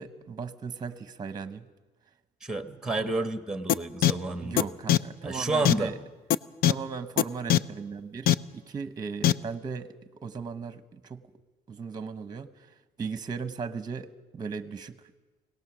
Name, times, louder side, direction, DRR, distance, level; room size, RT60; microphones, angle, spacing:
voice 1, 0.0-1.7 2.7-2.8 4.4-6.0 6.7-11.2 11.7-12.5 13.0-15.0, right 5 dB, 25° right, 10 dB, 1.1 m, -37 dB
voice 2, 2.4-4.6 5.2-5.9, right 2 dB, 5° right, 7 dB, 1.3 m, -30 dB
sound 1, 3.7-3.8 4.0-4.1 4.6-4.7 4.9-5.0 5.7-5.8 6.3-6.4 6.6-6.7 7.2-7.3 7.5-7.6 8.3-8.4 9.2-9.3, left 12 dB, 65° left, 0.6 m, -19 dB
25.0 x 18.5 x 6.2 m, 1.2 s
cardioid pair, 110°, 17 cm